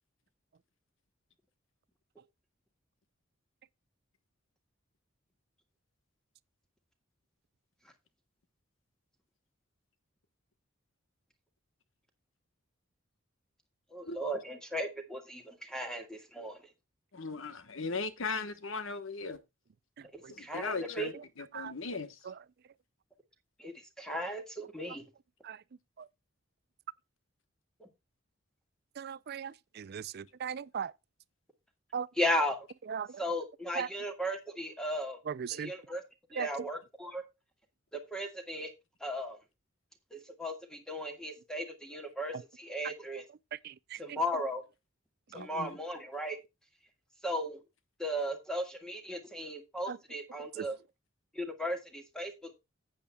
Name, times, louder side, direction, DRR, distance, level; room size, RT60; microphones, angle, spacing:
voice 1, 13.9-16.6 20.1-21.1 23.6-25.0 32.2-32.6 33.2-35.2 35.5-36.0 36.3-37.2 37.9-38.7 39.0-39.4 40.1-43.2 44.0-44.6 45.3-46.4 47.2-47.6 48.0-50.8 51.3-52.6, equal, 5° left, 1.7 m, -36 dB
voice 2, 17.1-19.4 20.3-22.2 45.3-45.8, left 4 dB, 75° left, 1.2 m, -38 dB
voice 3, 29.0-30.9 31.9-32.1 32.9-33.2 33.8-33.9 35.3-35.7 36.4-36.5 42.3-42.4 43.6-44.2 45.3-45.5 49.9-50.0, right 7 dB, 50° right, 0.4 m, -38 dB
14.0 x 8.5 x 2.3 m
head